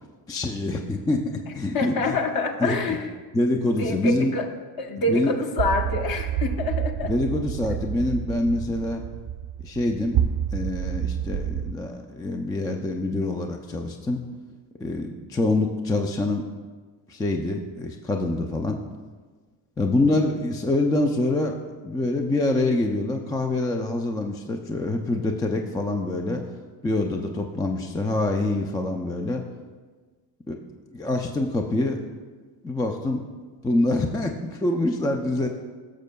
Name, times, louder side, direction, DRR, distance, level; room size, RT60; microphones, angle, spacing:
voice 1, 0.3-2.2 2.6-2.8 3.3-4.3 5.1-5.3 7.0-9.0 9.6-10.2 10.5-14.2 14.8-16.4 17.1-18.8 19.8-21.5 21.8-26.4 26.8-29.4 30.5-30.6 30.9-32.0 32.6-33.2 33.6-35.5, left 2 dB, 10° left, 3 dB, 0.3 m, -25 dB
voice 2, 1.7-3.1 3.8-4.5 4.8-7.1, left 3 dB, 45° left, 4 dB, 1.1 m, -26 dB
sound 1, 5.6-11.7, right 9 dB, 45° right, 0.6 m, -28 dB
13.5 x 6.4 x 2.3 m, 1.4 s
supercardioid pair, 75°, 50 cm